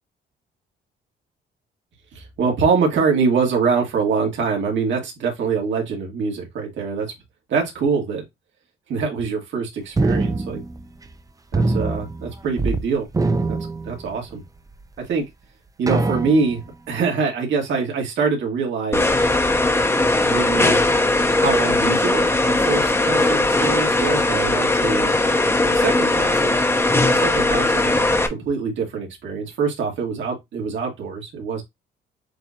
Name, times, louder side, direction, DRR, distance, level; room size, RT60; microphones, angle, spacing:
voice 1, 2.1-7.1 7.5-8.2 8.9-10.6 11.5-13.1 13.4-13.6 13.8-14.4 15.0-15.3 15.8-19.1 20.2-20.8 21.4-25.1 25.6-26.6 26.9-31.6, right 5 dB, 70° right, 2.1 m, -24 dB
sound 1, 10.0-11.2 11.5-12.8 13.1-14.4 15.0-15.1 15.9-16.7, right 3 dB, 20° right, 0.5 m, -23 dB
sound 2, 18.9-28.3, left 2 dB, 15° left, 0.8 m, -19 dB
7.4 x 2.5 x 2.8 m
cardioid pair, 90°, 20 cm